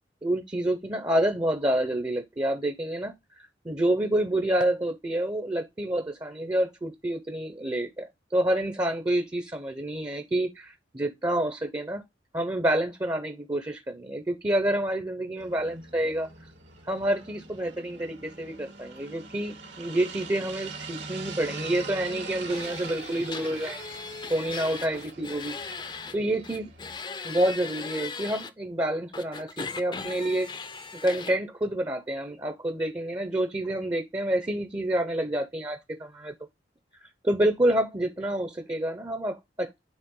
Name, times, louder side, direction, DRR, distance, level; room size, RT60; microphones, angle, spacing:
voice 1, 0.2-3.1 3.6-8.0 8.3-12.0 12.3-16.3 16.9-23.8 24.3-26.7 27.2-30.5 31.0-36.3 37.0-39.8, right 1 dB, 20° right, 0.7 m, -28 dB
sound 1, 15.4-27.0, right 4 dB, 80° right, 2.4 m, -42 dB
sound 2, 22.5-26.2 26.4-28.5 29.1-31.4, left 4 dB, 25° left, 0.6 m, -38 dB
9.6 x 3.5 x 3.7 m
head